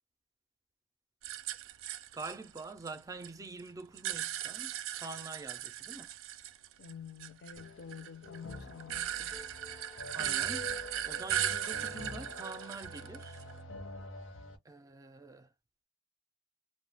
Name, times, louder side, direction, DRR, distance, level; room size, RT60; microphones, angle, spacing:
sound 1, 1.2-3.3 3.6-6.9 7.2-13.6, right 11 dB, 90° right, 0.3 m, -38 dB
voice 1, 2.1-6.1 10.1-10.7 11.0-13.4 14.6-15.5, right 3 dB, 15° right, 0.4 m, -46 dB
voice 2, 6.8-9.4, left 7 dB, 60° left, 0.5 m, -48 dB
sound 2, 7.6-14.6, left 2 dB, 85° left, 0.8 m, -46 dB
2.2 x 2.1 x 3.3 m
head